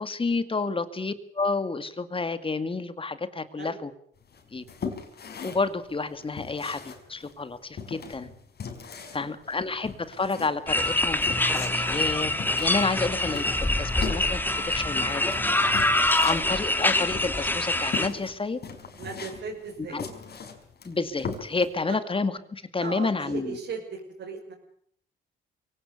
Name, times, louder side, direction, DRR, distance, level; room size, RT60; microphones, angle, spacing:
voice 1, 0.0-3.9 4.5-4.6 5.4-8.3 9.1-12.3 12.6-15.2 16.2-18.6 19.9-20.0 20.8-23.6, left 3 dB, 25° left, 12 dB, 2.2 m, -30 dB
sound 1, 4.3-21.8, left 5 dB, 55° left, 5.0 m, -39 dB
voice 2, 4.5-4.8 8.7-9.2 16.1-16.3 19.0-20.0 21.9-22.0 22.8-24.5, right 5 dB, 65° right, -2 dB, 6.0 m, -38 dB
sound 2, 10.7-18.1, left 1 dB, 10° left, 2.3 m, -25 dB
23.5 x 17.5 x 8.3 m, 0.64 s
cardioid pair, 90°, 20 cm